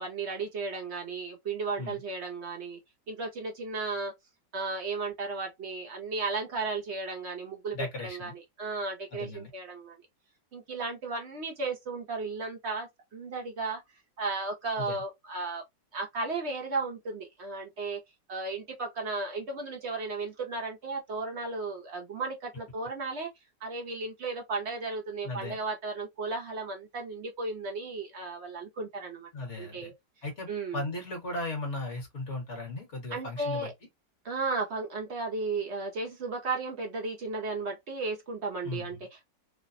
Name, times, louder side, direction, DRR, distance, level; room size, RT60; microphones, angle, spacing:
voice 1, 0.0-2.8 3.1-4.1 4.5-10.0 10.5-13.8 14.2-15.6 15.9-18.0 18.3-23.3 23.6-29.3 29.5-29.9 30.5-30.8 33.1-33.7 34.2-39.3, right 3 dB, 55° right, 0.7 m, -34 dB
voice 2, 7.7-8.3 9.1-9.5 14.8-15.0 25.2-25.6 29.3-29.9 30.2-33.7 38.6-38.9, left 2 dB, 45° left, 1.5 m, -36 dB
3.3 x 2.1 x 2.5 m
omnidirectional pair, 1.9 m